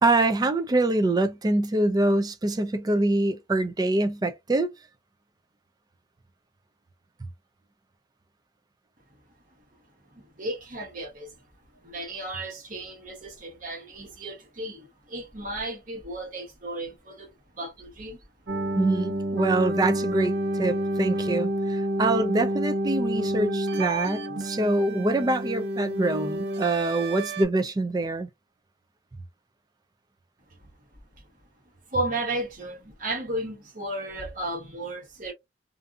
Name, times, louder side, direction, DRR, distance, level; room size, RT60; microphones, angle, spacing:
voice 1, 0.0-4.7 18.8-28.3, right 2 dB, 20° right, 0.3 m, -25 dB
voice 2, 10.1-11.3 11.8-18.2 31.9-35.3, right 1 dB, 45° right, 0.9 m, -34 dB
sound 1, 18.5-27.4, right 1 dB, 70° right, 0.7 m, -29 dB
2.5 x 2.5 x 2.3 m
head